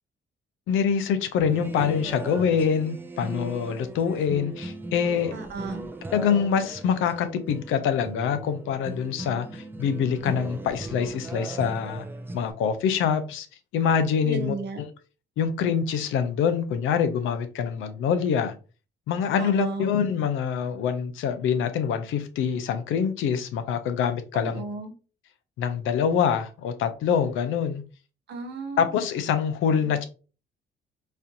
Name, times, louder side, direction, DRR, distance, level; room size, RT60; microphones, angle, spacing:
voice 1, 0.7-5.3 6.1-12.0 12.3-13.5 13.7-14.9 15.4-18.5 19.1-24.6 25.6-27.8 28.8-30.0, left 7 dB, 85° left, 0.6 m, -25 dB
sound 1, 1.4-12.5, right 2 dB, 10° right, 0.4 m, -38 dB
voice 2, 5.3-5.9 14.2-14.8 19.4-20.0 24.3-24.9 28.3-28.8, right 4 dB, 60° right, 0.9 m, -34 dB
4.2 x 2.5 x 2.7 m
cardioid pair, 90°, 20 cm